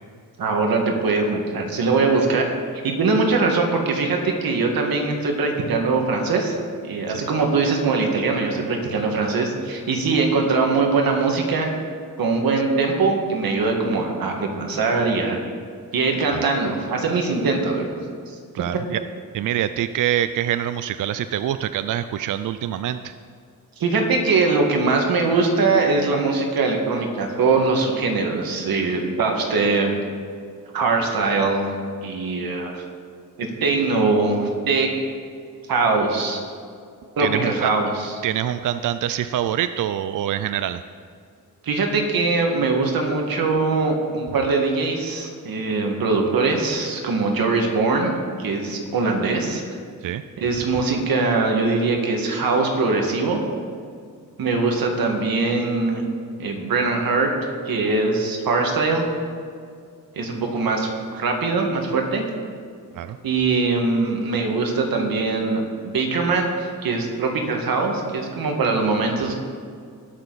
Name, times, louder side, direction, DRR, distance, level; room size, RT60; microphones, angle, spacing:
voice 1, 0.4-2.5 2.8-6.6 6.8-11.7 12.2-15.4 15.9-18.0 18.3-18.6 23.8-30.0 30.7-31.7 32.0-32.8 33.4-34.9 35.7-36.4 37.2-38.1 41.6-48.1 48.4-49.6 50.4-53.4 54.4-56.0 56.4-57.3 57.7-59.0 60.1-62.2 63.2-69.3, right 3 dB, 80° right, 2 dB, 1.9 m, -22 dB
voice 2, 18.5-19.0 19.3-23.1 37.2-37.7 38.2-40.8 50.0-50.2 62.9-63.2, right 11 dB, 65° right, 12 dB, 0.5 m, -25 dB
19.5 x 6.7 x 4.1 m, 2.2 s
cardioid pair, 85°, 35 cm